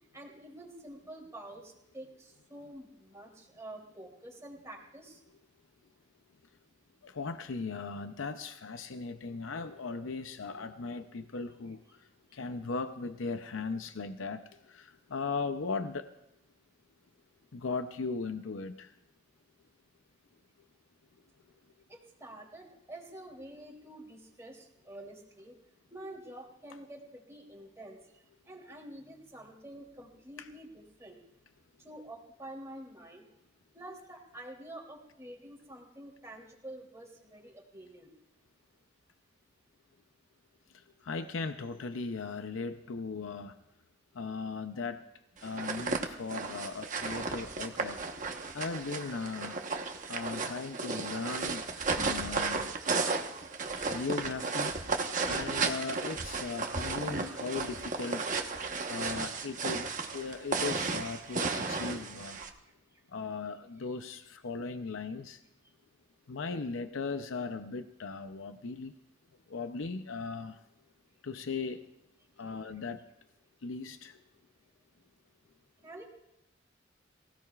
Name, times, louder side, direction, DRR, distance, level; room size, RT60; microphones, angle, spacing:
voice 1, 0.1-5.2 21.9-25.5 25.9-28.0 28.5-31.2 31.8-33.2 33.7-38.1 75.8-76.1, right 1 dB, 15° right, -1 dB, 3.1 m, -48 dB
voice 2, 7.0-11.8 12.3-16.1 17.5-18.9 30.4-30.5 40.7-43.6 44.1-45.0 45.4-48.0 48.5-49.6 50.1-51.7 52.0-52.7 53.8-54.8 55.2-62.4 63.1-65.4 66.3-68.9 69.5-70.6 71.2-71.8 72.4-73.0 73.6-74.2, left 4 dB, 85° left, 9 dB, 0.6 m, -38 dB
sound 1, 45.4-62.5, right 4 dB, 40° right, 1.2 m, -34 dB
24.0 x 16.5 x 2.4 m, 0.88 s
head